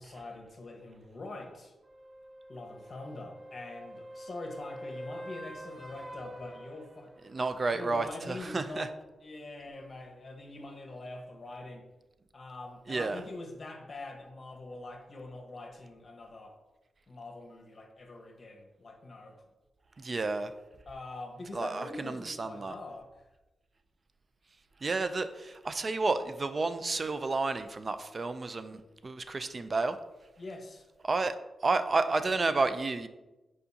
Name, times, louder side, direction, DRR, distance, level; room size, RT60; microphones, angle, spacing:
voice 1, 0.0-1.7 2.5-7.1 7.7-8.9 9.2-11.9 12.3-16.6 17.1-19.4 20.9-23.1 30.4-30.9, left 2 dB, 45° left, 2 dB, 1.3 m, -44 dB
sound 1, 1.8-7.5 11.6-11.7, equal, 20° right, 0.9 m, -46 dB
voice 2, 7.2-8.9 12.9-13.2 20.0-20.5 21.5-22.7 24.8-30.0 31.0-31.4 31.6-33.1, right 3 dB, 40° right, 11 dB, 0.5 m, -31 dB
6.8 x 4.9 x 2.8 m, 1.1 s
cardioid pair, 65°, 0 cm